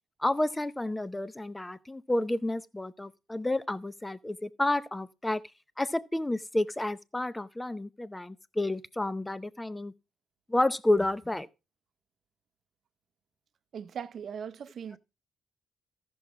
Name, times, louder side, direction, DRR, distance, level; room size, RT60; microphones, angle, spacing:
voice 1, 0.2-5.4 5.8-9.9 10.5-11.5, left 1 dB, 10° left, 0.6 m, -30 dB
voice 2, 13.7-15.0, right 7 dB, 55° right, 0.6 m, -39 dB
14.0 x 6.2 x 3.5 m
cardioid pair, 90°, 0 cm